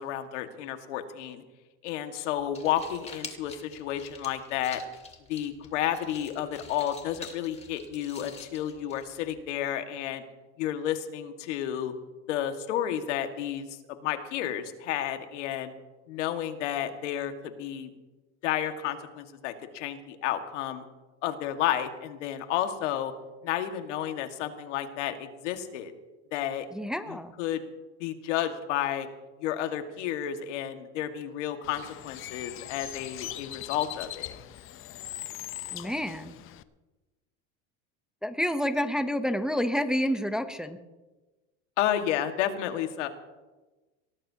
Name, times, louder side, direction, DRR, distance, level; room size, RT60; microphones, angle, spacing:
voice 1, 0.0-1.4 1.8-4.8 5.3-10.2 10.6-11.9 12.3-15.7 16.1-17.9 18.4-20.8 21.2-23.1 23.4-25.9 26.3-26.7 27.1-27.6 28.0-29.1 29.4-34.3 41.8-43.1, left 11 dB, 85° left, 6 dB, 1.8 m, -31 dB
sound 1, 2.4-9.4, left 4 dB, 20° left, 2.5 m, -47 dB
voice 2, 26.7-27.3 35.7-36.4 38.2-40.8, equal, ahead, 9 dB, 0.7 m, -29 dB
Bird, 31.6-36.6, left 13 dB, 35° left, 0.7 m, -41 dB
23.0 x 18.0 x 2.8 m, 1.2 s
supercardioid pair, 130°, 35 cm